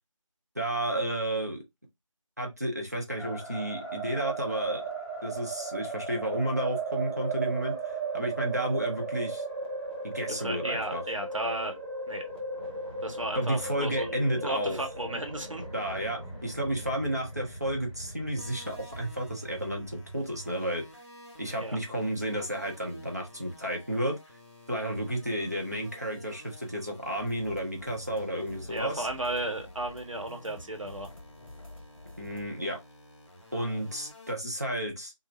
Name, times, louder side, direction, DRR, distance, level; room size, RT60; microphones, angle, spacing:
voice 1, 0.5-1.6 2.4-4.8 5.2-7.8 8.1-9.4 10.0-11.0 13.3-14.8 15.7-20.8 21.4-24.2 24.7-29.1 32.2-32.8 33.5-35.1, right 1 dB, 30° right, 0.6 m, -32 dB
sound 1, 3.2-20.6, right 4 dB, 10° right, 1.1 m, -37 dB
voice 2, 10.4-11.8 12.1-12.2 13.0-15.6 21.6-21.8 28.7-31.1, right 1 dB, 70° right, 0.9 m, -34 dB
sound 2, 18.4-34.3, left 1 dB, 55° left, 1.1 m, -53 dB
sound 3, 27.0-32.5, left 1 dB, 85° left, 0.7 m, -49 dB
2.8 x 2.0 x 3.0 m
figure-of-eight pair, 175°, 17 cm